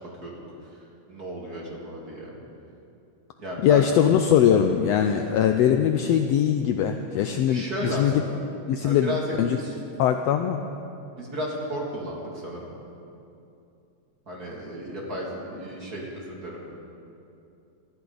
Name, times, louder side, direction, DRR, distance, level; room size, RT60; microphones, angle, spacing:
voice 1, 1.1-2.3 3.4-3.9 5.0-5.2 7.5-8.4 8.8-9.8 11.2-12.7 14.3-16.7, equal, 30° right, -3 dB, 2.7 m, -34 dB
voice 2, 3.6-8.1 8.7-9.1 9.4-9.6 10.0-10.6, left 9 dB, 80° left, 6 dB, 1.5 m, -21 dB
24.5 x 13.5 x 4.0 m, 2.7 s
omnidirectional pair, 3.4 m